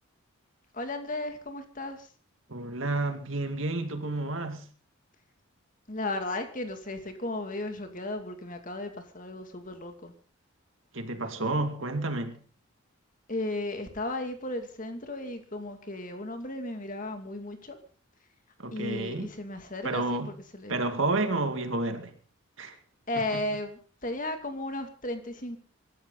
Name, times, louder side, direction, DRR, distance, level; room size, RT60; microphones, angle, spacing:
voice 1, 0.7-2.1 5.9-10.1 13.3-17.8 18.7-20.8 23.1-25.6, left 2 dB, 40° left, 2.5 m, -35 dB
voice 2, 2.5-4.7 10.9-12.4 18.6-19.3 19.8-20.3 20.7-22.1 22.6-22.8 23.3-23.4, right 2 dB, 65° right, 2.3 m, -30 dB
24.5 x 13.5 x 4.0 m
head